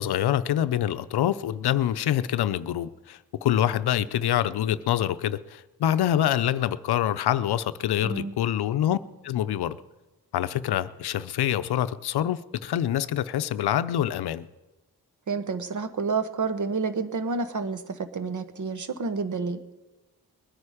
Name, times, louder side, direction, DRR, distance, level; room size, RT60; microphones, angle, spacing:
voice 1, 0.0-9.0 9.2-9.8 10.3-14.5, left 11 dB, 85° left, 0.6 m, -26 dB
voice 2, 8.0-8.3 15.3-19.6, right 4 dB, 50° right, 1.1 m, -29 dB
20.5 x 9.7 x 4.9 m
cardioid pair, 80°, 38 cm